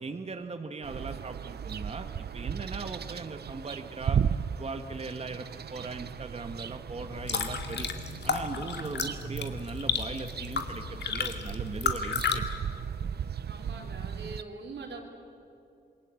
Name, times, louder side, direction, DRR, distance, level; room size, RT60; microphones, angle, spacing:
voice 1, 0.0-2.1 2.3-4.2 4.6-7.9 8.2-12.4, right 3 dB, 35° right, 6 dB, 1.3 m, -39 dB
sound 1, 0.8-14.4, right 8 dB, 65° right, 0.7 m, -36 dB
sound 2, 7.0-12.4, left 5 dB, 75° left, 2.2 m, -33 dB
voice 2, 13.4-15.0, right 3 dB, 85° right, 1 dB, 4.3 m, -42 dB
27.5 x 22.5 x 8.5 m, 2.7 s
wide cardioid pair, 115°, 18 cm